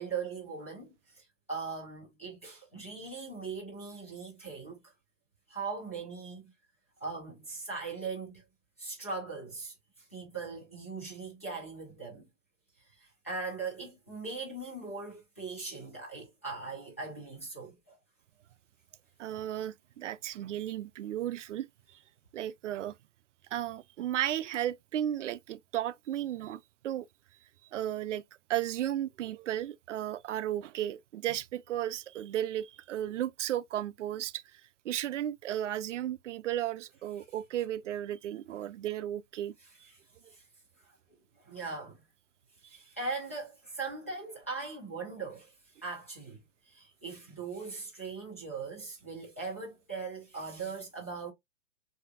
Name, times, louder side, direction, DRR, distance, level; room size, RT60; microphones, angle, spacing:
voice 1, 0.0-4.8 5.5-6.5 7.0-8.4 8.8-9.7 10.1-12.3 13.0-18.0 40.3-40.4 40.8-40.9 41.4-42.0 42.7-46.4 46.7-51.3, right 4 dB, 10° left, 0.4 m, -40 dB
voice 2, 19.2-22.0 22.3-23.0 23.5-27.1 27.7-28.2 28.5-39.5, right 12 dB, 75° right, 0.5 m, -34 dB
5.7 x 2.7 x 2.2 m
hypercardioid pair, 175°, 36 cm